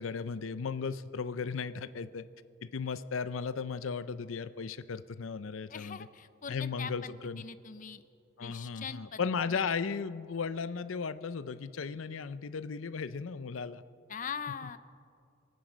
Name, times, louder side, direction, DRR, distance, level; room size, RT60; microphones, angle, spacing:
voice 1, 0.0-2.2 2.6-6.1 6.5-7.5 8.4-13.8, left 5 dB, 85° left, 14 dB, 0.6 m, -36 dB
voice 2, 5.7-8.0 8.4-9.2 9.5-9.7 14.1-14.8, left 6 dB, 40° left, 12 dB, 0.6 m, -42 dB
27.5 x 9.5 x 5.1 m, 2.5 s
head